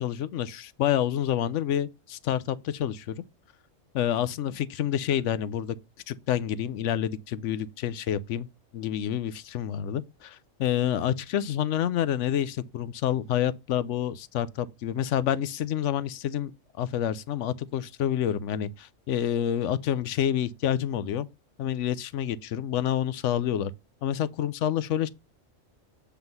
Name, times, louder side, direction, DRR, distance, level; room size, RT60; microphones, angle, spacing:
voice 1, 0.0-3.2 3.9-5.8 6.1-8.5 8.7-16.5 16.8-21.3 21.6-23.7 24.0-25.1, left 10 dB, 70° left, 0.9 m, -28 dB
7.8 x 3.5 x 5.4 m
omnidirectional pair, 1.4 m